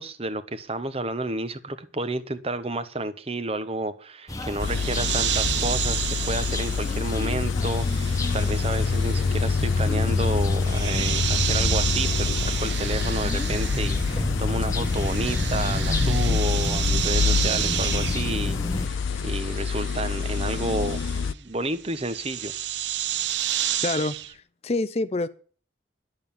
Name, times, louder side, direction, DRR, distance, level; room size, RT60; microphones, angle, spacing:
voice 1, 0.0-22.5, right 2 dB, 30° right, 1.0 m, -31 dB
sound 1, 4.3-18.9, left 1 dB, 20° left, 1.2 m, -30 dB
sound 2, 4.6-21.3, left 5 dB, 85° left, 0.5 m, -26 dB
sound 3, 4.6-14.3 14.6-24.3, right 11 dB, 70° right, 0.9 m, -31 dB
voice 2, 23.8-25.3, left 2 dB, 35° left, 0.5 m, -27 dB
11.0 x 7.9 x 8.7 m
head